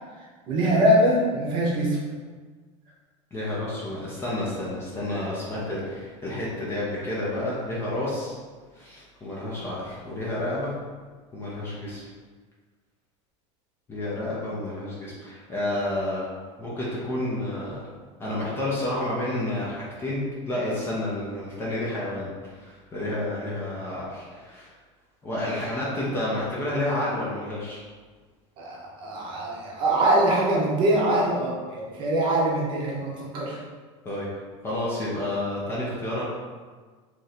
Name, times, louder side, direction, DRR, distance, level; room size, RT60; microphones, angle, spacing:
voice 1, 0.5-2.0 28.6-33.6, right 1 dB, 30° right, -4 dB, 0.7 m, -23 dB
voice 2, 3.3-8.3 8.7-10.7 11.3-12.0 13.9-16.3 16.6-17.8 18.2-20.2 20.5-24.7 25.2-27.8 34.0-34.3 34.6-36.2, left 1 dB, 15° left, -7 dB, 0.5 m, -30 dB
3.0 x 2.6 x 4.1 m, 1.5 s
supercardioid pair, 175°, 16 cm